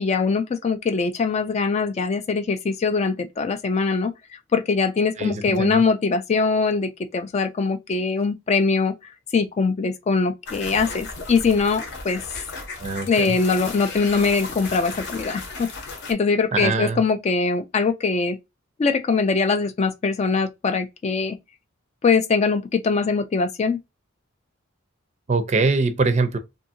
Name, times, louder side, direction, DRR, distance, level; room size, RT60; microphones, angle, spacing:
voice 1, 0.0-4.1 4.5-8.9 9.3-12.2 13.1-15.7 16.1-18.4 18.8-21.4 22.0-23.8, left 4 dB, 30° left, 0.3 m, -22 dB
voice 2, 5.2-5.8 12.8-13.4 16.5-17.0 25.3-26.4, right 3 dB, 35° right, 0.4 m, -23 dB
sound 1, 10.5-16.1, left 3 dB, 60° left, 0.8 m, -35 dB
2.7 x 2.6 x 2.6 m
head